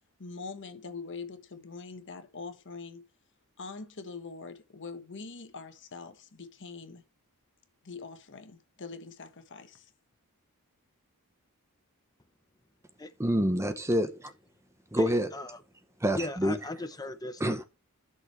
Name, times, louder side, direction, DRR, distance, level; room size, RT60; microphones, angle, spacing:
voice 1, 0.2-3.0 3.6-7.0 7.8-9.9, left 4 dB, 55° left, 1.2 m, -43 dB
voice 2, 13.2-14.3 14.9-15.3 16.0-16.6 17.4-17.6, equal, 10° right, 0.7 m, -27 dB
voice 3, 15.0-15.6 16.2-17.7, left 2 dB, 15° left, 0.9 m, -38 dB
13.5 x 6.4 x 3.2 m
head